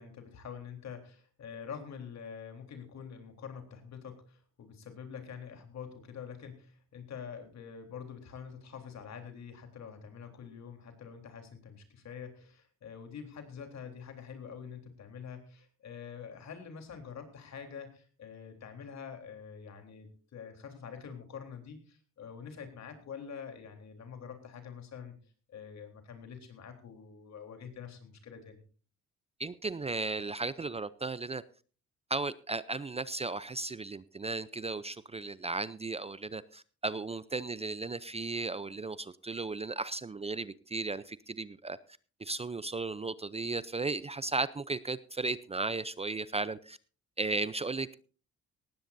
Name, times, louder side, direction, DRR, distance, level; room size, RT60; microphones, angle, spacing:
voice 1, 0.0-25.2 25.5-28.6, left 7 dB, 65° left, 5 dB, 3.7 m, -46 dB
voice 2, 29.4-31.4 32.1-41.8 42.2-46.8 47.2-47.9, right 3 dB, 20° right, 16 dB, 0.5 m, -35 dB
18.5 x 15.5 x 2.7 m, 0.38 s
cardioid pair, 90°, 30 cm